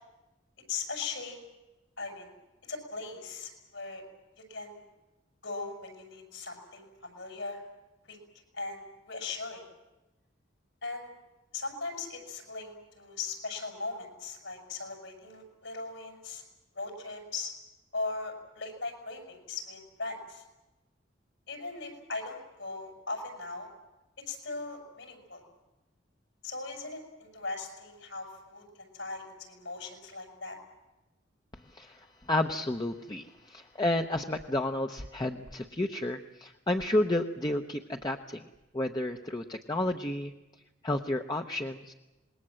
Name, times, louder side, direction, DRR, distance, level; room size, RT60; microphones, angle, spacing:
voice 1, 0.7-1.4 2.0-2.3 2.7-4.0 4.4-4.8 5.4-7.6 8.1-8.2 8.5-9.6 10.8-11.1 11.5-16.4 16.7-17.5 17.9-20.4 21.5-23.7 24.3-25.4 26.4-30.6, left 3 dB, 75° left, 4 dB, 7.2 m, -39 dB
voice 2, 31.7-38.5 38.7-40.3 40.8-41.9, left 1 dB, 20° left, 4 dB, 0.8 m, -31 dB
26.5 x 21.0 x 7.6 m, 1.1 s
head